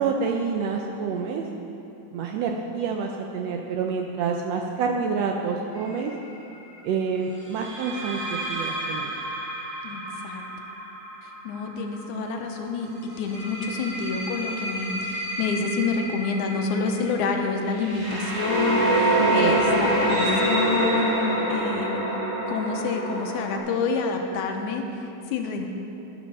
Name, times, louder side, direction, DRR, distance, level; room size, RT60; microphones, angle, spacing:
voice 1, 0.0-1.4 2.1-6.1 6.8-9.1 19.1-19.5, right 5 dB, 80° right, 2 dB, 1.5 m, -27 dB
sound 1, 5.7-6.0 7.5-12.3 13.1-23.6, right 1 dB, 55° right, 4.2 m, -27 dB
voice 2, 9.8-10.4 11.2-12.9 13.2-22.0 22.5-25.7, left 4 dB, 85° left, 4 dB, 2.3 m, -28 dB
12.0 x 10.5 x 4.1 m, 2.9 s
omnidirectional pair, 3.5 m